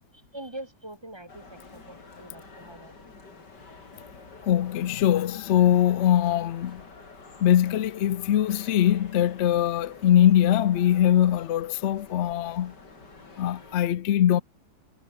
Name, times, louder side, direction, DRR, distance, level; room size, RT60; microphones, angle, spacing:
voice 1, 0.3-3.2, right 1 dB, 15° right, 2.3 m, -43 dB
sound 1, 1.3-13.8, left 4 dB, 60° left, 4.3 m, -48 dB
voice 2, 4.5-6.8 7.4-12.7 13.4-14.4, left 11 dB, 80° left, 0.6 m, -22 dB
omnidirectional pair, 2.1 m